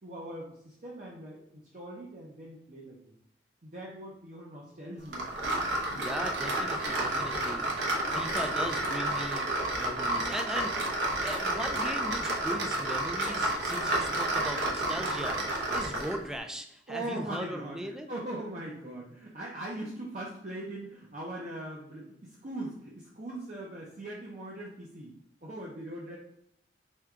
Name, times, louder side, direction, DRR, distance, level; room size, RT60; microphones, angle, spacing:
voice 1, 0.0-3.2 3.6-5.5 15.6-15.8 16.9-25.1 25.4-26.2, right 1 dB, 45° right, -4 dB, 0.6 m, -41 dB
sound 1, 5.1-16.2, right 1 dB, 80° right, 0.9 m, -30 dB
voice 2, 5.9-9.5 9.8-10.8 11.2-18.1, equal, 5° right, 5 dB, 0.3 m, -39 dB
4.4 x 2.3 x 3.6 m, 0.75 s
head